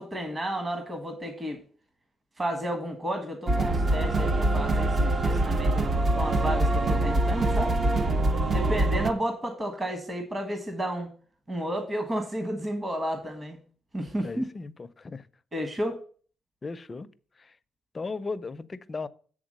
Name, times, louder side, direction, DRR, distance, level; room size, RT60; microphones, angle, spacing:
voice 1, 0.0-1.6 2.4-7.7 8.5-11.1 11.5-13.6 13.9-14.4 15.5-16.0, equal, 25° right, 1.3 m, -32 dB
sound 1, 3.5-9.1, right 2 dB, 45° right, 0.7 m, -24 dB
voice 2, 8.3-8.6 14.2-15.3 16.6-17.1 17.4-17.6 17.9-19.1, left 4 dB, 30° left, 0.5 m, -37 dB
8.0 x 3.6 x 6.4 m
cardioid pair, 90°, 0 cm